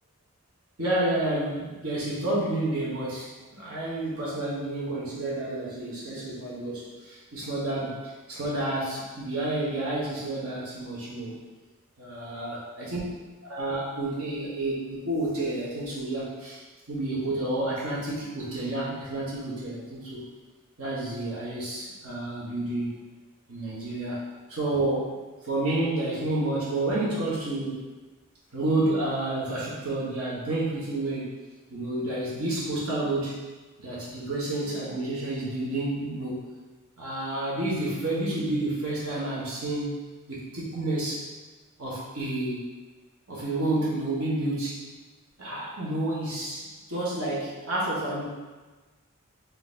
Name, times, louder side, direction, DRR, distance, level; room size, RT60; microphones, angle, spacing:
voice 1, 0.8-11.4 12.0-13.0 13.4-16.6 16.9-20.2 20.8-23.0 23.5-24.2 24.5-25.2 25.4-27.9 28.5-31.3 31.7-33.4 33.8-36.4 37.0-40.0 40.3-41.2 41.8-42.6 43.3-44.8 45.4-48.2, right 2 dB, 75° right, -7 dB, 1.4 m, -30 dB
3.9 x 2.9 x 3.8 m, 1.3 s
head